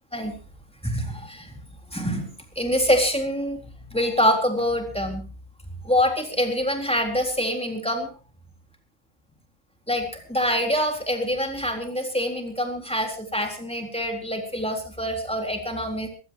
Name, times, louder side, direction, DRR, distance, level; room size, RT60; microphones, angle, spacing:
voice 1, 0.8-1.6 1.9-2.3 2.6-3.6 3.9-5.2 5.8-8.1 9.9-16.1, equal, 5° left, 3 dB, 3.8 m, -25 dB
23.0 x 16.5 x 3.0 m, 0.35 s
omnidirectional pair, 1.4 m